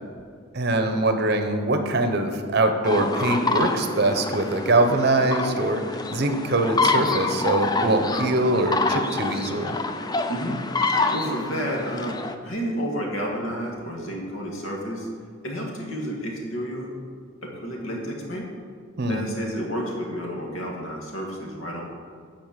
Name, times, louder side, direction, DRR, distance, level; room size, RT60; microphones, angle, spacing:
voice 1, 0.5-9.8 19.0-19.2, right 2 dB, 50° right, 6 dB, 0.7 m, -23 dB
sound 1, 2.8-12.3, left 3 dB, 20° left, 0.4 m, -27 dB
voice 2, 10.3-10.6 10.9-15.1 15.4-16.9 17.4-18.5 19.1-21.8, equal, 75° left, -1 dB, 1.8 m, -31 dB
9.4 x 4.4 x 7.3 m, 2.1 s
head